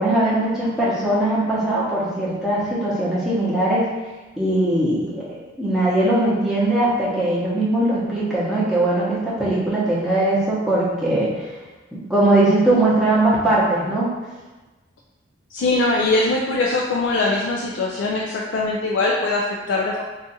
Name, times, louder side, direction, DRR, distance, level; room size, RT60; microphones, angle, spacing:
voice 1, 0.0-3.8 4.4-5.3 5.6-11.3 12.1-14.1, right 1 dB, ahead, -9 dB, 0.8 m, -20 dB
voice 2, 15.5-20.0, left 2 dB, 65° left, -3 dB, 0.3 m, -21 dB
2.5 x 2.4 x 4.0 m, 1.2 s
head